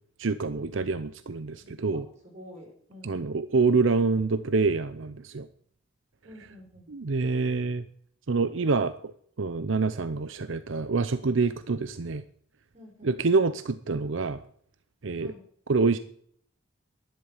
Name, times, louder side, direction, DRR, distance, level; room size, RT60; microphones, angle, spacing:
voice 1, 0.2-2.0 3.0-5.5 6.9-7.8 8.3-9.1 9.4-12.2 13.0-14.4 15.0-15.3 15.7-16.0, right 4 dB, 80° right, 12 dB, 0.7 m, -26 dB
voice 2, 1.6-3.3 6.2-6.9 11.9-12.0 12.7-13.2 15.2-15.5, equal, 35° right, -1 dB, 6.3 m, -49 dB
12.0 x 11.0 x 7.2 m, 0.63 s
head